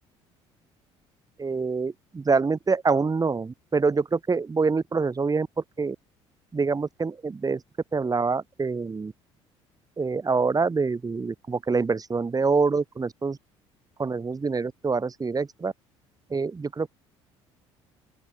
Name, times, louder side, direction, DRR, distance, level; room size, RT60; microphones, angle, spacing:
voice 1, 1.4-5.5 5.8-6.0 6.5-7.6 7.9-9.1 10.0-13.4 14.0-15.7 16.3-16.9, right 4 dB, 25° right, 2.3 m, -25 dB
open air
hypercardioid pair, 65°, 14 cm